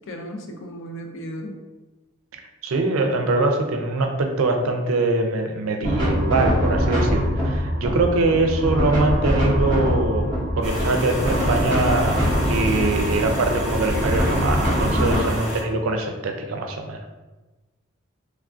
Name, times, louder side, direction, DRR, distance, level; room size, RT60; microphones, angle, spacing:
voice 1, 0.1-1.6 14.9-15.4, equal, 65° left, 3 dB, 0.4 m, -32 dB
voice 2, 2.3-17.0, right 2 dB, 90° right, 4 dB, 0.4 m, -23 dB
sound 1, 5.8-15.2, equal, 20° left, 0.8 m, -23 dB
sound 2, 10.6-15.6, equal, 15° right, 0.8 m, -30 dB
3.3 x 2.3 x 2.5 m, 1.2 s
head